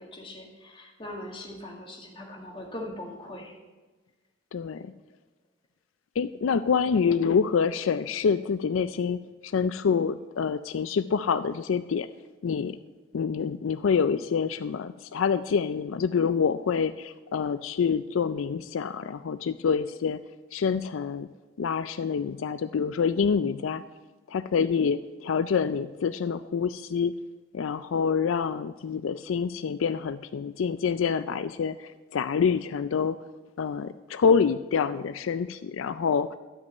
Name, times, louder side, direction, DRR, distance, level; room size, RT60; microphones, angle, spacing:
voice 1, 0.0-3.5, left 1 dB, 25° left, 0 dB, 1.9 m, -40 dB
voice 2, 4.5-4.9 6.2-12.1 12.4-12.8 13.1-20.2 20.5-21.3 21.6-23.8 24.3-27.1 27.5-33.2 33.6-36.4, left 6 dB, 85° left, 13 dB, 0.4 m, -26 dB
12.5 x 5.4 x 8.2 m, 1.3 s
head